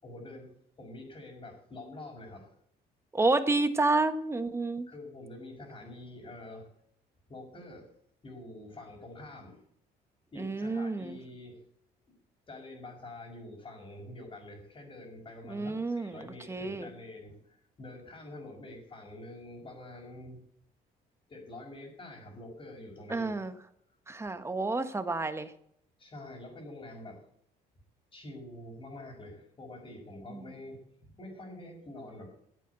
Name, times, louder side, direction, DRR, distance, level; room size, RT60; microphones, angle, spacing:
voice 1, 0.0-2.5 4.9-6.7 7.3-7.9 8.2-9.6 10.3-11.6 12.5-20.4 21.3-23.4 26.0-27.2 28.1-32.3, left 1 dB, 30° left, -4 dB, 5.6 m, -46 dB
voice 2, 3.1-4.9 10.4-11.2 15.5-16.9 23.1-23.5 24.1-25.5 30.3-30.4, right 3 dB, 15° right, 9 dB, 1.4 m, -30 dB
14.5 x 8.5 x 8.2 m, 0.70 s
cardioid pair, 110°, 17 cm